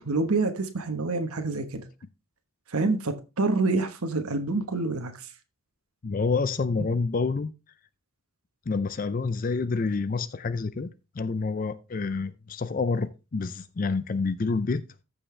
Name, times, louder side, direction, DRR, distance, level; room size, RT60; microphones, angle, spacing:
voice 1, 0.0-1.8 2.7-5.3, right 3 dB, 85° right, 1.2 m, -27 dB
voice 2, 6.0-7.5 8.7-10.9 11.2-14.8, left 4 dB, 40° left, 0.4 m, -28 dB
14.0 x 5.5 x 3.2 m
head